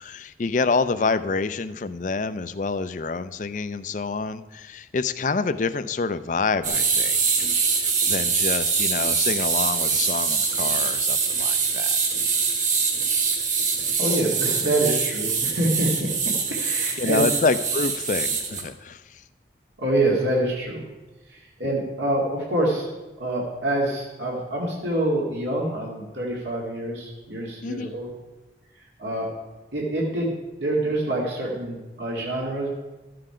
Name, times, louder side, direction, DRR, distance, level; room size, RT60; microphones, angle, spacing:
voice 1, 0.0-7.5 8.1-12.0 17.0-19.0 27.6-27.9, left 4 dB, 45° left, 12 dB, 0.4 m, -27 dB
sound 1, 6.6-18.6, right 5 dB, 45° right, 1.5 m, -24 dB
voice 2, 14.0-16.1 16.5-17.3 19.8-20.8 21.3-22.9 23.2-28.1 29.0-29.3 29.7-30.3 30.6-32.7, right 1 dB, 85° right, -3 dB, 2.1 m, -26 dB
12.5 x 7.7 x 5.0 m, 1.2 s
head